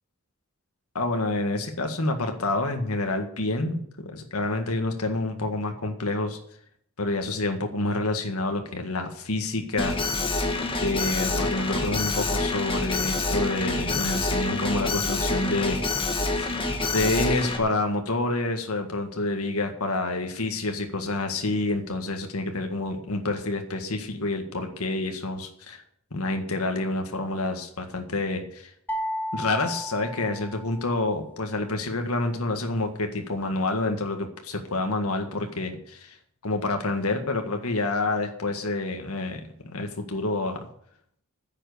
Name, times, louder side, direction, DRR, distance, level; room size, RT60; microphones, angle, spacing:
voice 1, 1.0-6.4 7.0-9.9 10.8-16.5 16.9-25.8 26.1-28.7 29.3-36.2 36.4-40.6, left 2 dB, 90° left, 5 dB, 1.9 m, -28 dB
Alarm, 9.8-17.6, left 2 dB, 25° left, 1.9 m, -27 dB
sound 1, 28.9-31.0, equal, 10° left, 1.4 m, -33 dB
10.0 x 7.7 x 9.5 m, 0.67 s
head